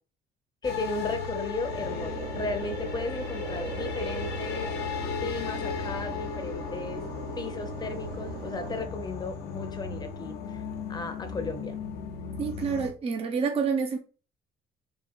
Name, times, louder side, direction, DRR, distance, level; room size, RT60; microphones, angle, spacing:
sound 1, 0.6-12.9, left 6 dB, 70° left, 0.9 m, -36 dB
voice 1, 0.6-4.7 5.2-10.6 10.9-11.8, left 3 dB, 25° left, 0.8 m, -35 dB
sound 2, 1.6-8.9, right 5 dB, 65° right, 0.9 m, -40 dB
voice 2, 12.4-14.0, right 5 dB, 35° right, 0.7 m, -28 dB
3.8 x 2.5 x 4.4 m
cardioid pair, 110°, 17 cm